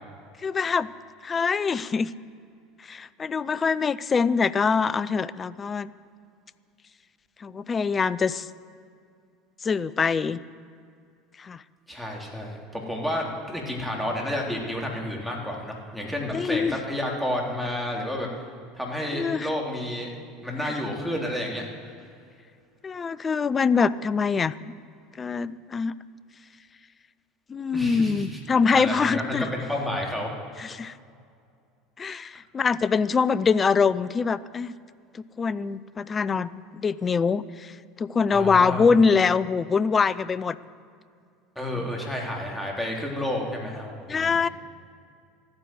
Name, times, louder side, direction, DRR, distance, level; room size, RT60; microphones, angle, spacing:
voice 1, 0.4-0.9 1.2-2.1 2.8-5.9 7.4-8.5 9.6-10.4 11.4-11.6 16.3-16.8 19.1-19.5 20.6-20.8 22.8-24.7 25.2-25.9 27.5-29.5 30.6-30.9 32.0-34.7 35.1-40.6 44.1-44.5, left 5 dB, 25° left, 17 dB, 0.5 m, -24 dB
voice 2, 11.9-18.3 18.8-20.1 20.4-21.7 27.7-28.4 28.7-30.3 38.3-38.9 41.6-44.5, left 1 dB, ahead, -2 dB, 3.5 m, -30 dB
13.5 x 9.7 x 7.8 m, 2.3 s
figure-of-eight pair, 70°, 0 cm